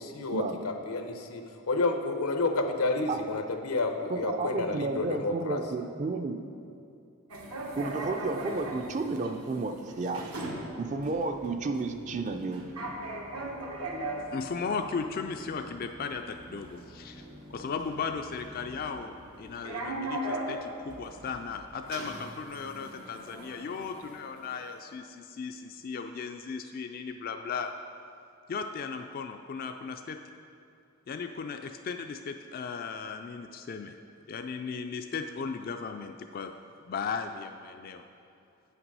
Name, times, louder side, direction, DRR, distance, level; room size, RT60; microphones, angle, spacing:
voice 1, 0.0-1.4 1.7-5.6, left 3 dB, 85° left, 5 dB, 0.8 m, -30 dB
voice 2, 4.1-6.4 7.7-10.3 10.8-12.6, right 3 dB, 35° right, 6 dB, 0.4 m, -32 dB
sound 1, 7.3-24.8, right 1 dB, 80° right, 1.2 m, -40 dB
voice 3, 14.3-27.7 28.5-30.2 31.1-33.9 34.3-36.5 36.8-38.0, left 5 dB, 40° left, 5 dB, 0.3 m, -36 dB
8.8 x 5.9 x 5.4 m, 2.6 s
head